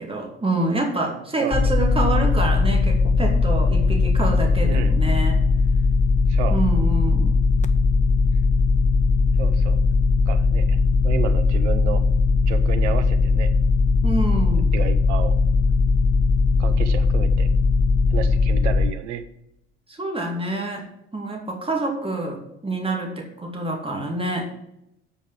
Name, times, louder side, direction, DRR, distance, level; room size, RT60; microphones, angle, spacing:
voice 1, 0.0-5.4 6.5-7.4 14.0-14.7 19.9-20.8 21.1-24.5, right 2 dB, 15° right, 0 dB, 2.6 m, -27 dB
voice 2, 1.4-1.7 4.6-4.9 6.3-6.6 9.4-9.8 10.3-10.8 11.0-12.0 12.5-13.5 14.7-15.3 16.6-17.5 18.1-19.2, right 9 dB, 75° right, 10 dB, 1.0 m, -31 dB
sound 1, 1.5-18.9, left 4 dB, 20° left, 0.6 m, -19 dB
8.3 x 5.4 x 7.5 m, 0.81 s
hypercardioid pair, 65°, 35 cm